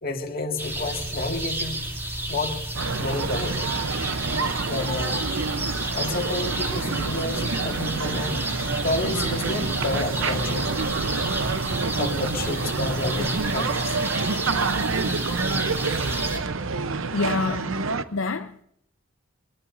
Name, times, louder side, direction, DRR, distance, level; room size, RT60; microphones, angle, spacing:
voice 1, 0.0-1.8 2.3-2.6 2.9-3.7 4.7-5.3 5.9-8.4 8.8-10.7 12.0-14.0, left 2 dB, 45° left, 2.1 m, -30 dB
sound 1, 0.6-16.4, right 1 dB, 10° right, 2.7 m, -31 dB
sound 2, 2.7-18.0, right 4 dB, 70° right, 0.8 m, -28 dB
voice 2, 17.1-18.6, left 3 dB, 70° left, 0.6 m, -28 dB
22.5 x 21.5 x 2.7 m
head